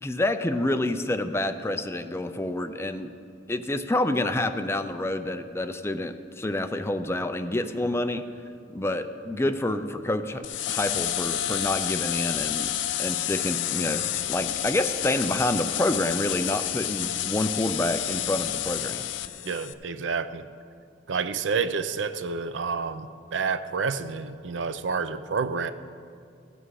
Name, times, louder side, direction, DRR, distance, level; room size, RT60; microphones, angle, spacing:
voice 1, 0.0-3.1 3.5-8.2 8.7-12.7 13.0-14.0 14.3-19.0, left 1 dB, 15° left, 9 dB, 0.5 m, -28 dB
sound 1, 10.4-19.7, left 12 dB, 85° left, 0.5 m, -30 dB
voice 2, 19.4-20.4 21.1-25.7, right 5 dB, 85° right, 12 dB, 0.5 m, -29 dB
15.5 x 7.9 x 4.8 m, 2.3 s
head